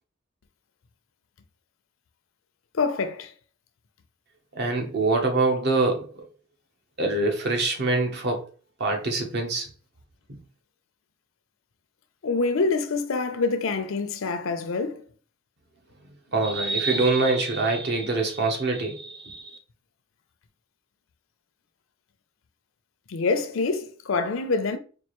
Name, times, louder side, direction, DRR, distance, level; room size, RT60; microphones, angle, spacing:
voice 1, 2.7-3.3 12.2-15.1 23.1-24.8, left 4 dB, 80° left, 0.6 m, -26 dB
voice 2, 4.6-6.1 7.0-8.4 8.8-9.7 10.3-10.4 16.3-19.5, right 3 dB, 55° right, 0.9 m, -24 dB
4.5 x 2.4 x 3.0 m
head